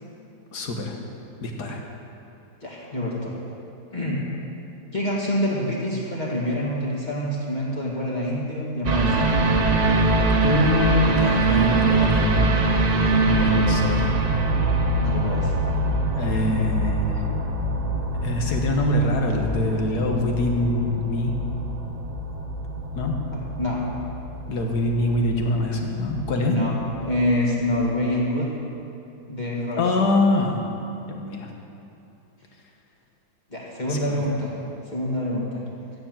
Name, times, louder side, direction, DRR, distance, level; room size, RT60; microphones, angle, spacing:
voice 1, 0.5-0.9 1.4-1.8 10.4-12.5 13.3-14.1 16.2-17.3 18.2-21.3 23.0-23.2 24.5-26.6 29.8-30.6 31.1-31.5 33.9-34.0, left 2 dB, 80° left, 2 dB, 1.9 m, -24 dB
voice 2, 2.6-3.3 3.9-4.2 4.9-9.5 15.0-15.5 23.6-23.8 26.5-28.5 29.3-29.8 33.5-34.6 34.9-35.6, left 1 dB, 30° left, -5 dB, 2.0 m, -26 dB
sound 1, 8.8-27.3 27.6-27.7, right 2 dB, 40° right, 0.6 m, -24 dB
15.0 x 7.1 x 7.6 m, 2.8 s
omnidirectional pair, 1.7 m